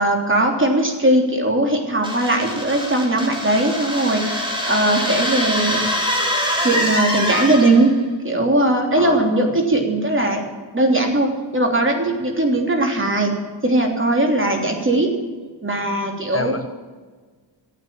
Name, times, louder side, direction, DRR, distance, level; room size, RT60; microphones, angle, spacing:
voice 1, 0.0-4.3 4.6-5.8 6.6-7.9 8.2-10.4 10.7-13.3 13.6-15.1 15.6-16.5, right 1 dB, 25° right, 2 dB, 3.3 m, -19 dB
sound 1, 2.0-8.0, equal, 10° right, 3.7 m, -24 dB
voice 2, 8.9-9.5 14.5-14.6 16.3-16.7, left 4 dB, 30° left, 9 dB, 0.8 m, -29 dB
12.0 x 8.6 x 8.6 m, 1.4 s
cardioid pair, 75°, 46 cm